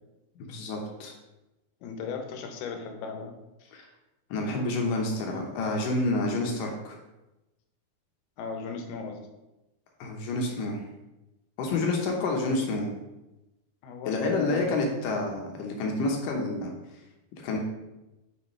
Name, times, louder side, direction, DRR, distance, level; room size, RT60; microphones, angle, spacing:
voice 1, 0.5-1.1 3.7-3.9 4.3-7.0 10.0-10.8 11.6-12.9 14.1-16.7 17.4-17.6, left 2 dB, 70° left, 1 dB, 2.4 m, -28 dB
voice 2, 1.8-3.4 8.4-9.3 13.8-14.7, left 5 dB, 85° left, 4 dB, 2.8 m, -36 dB
6.8 x 6.4 x 3.2 m, 1.0 s
omnidirectional pair, 4.4 m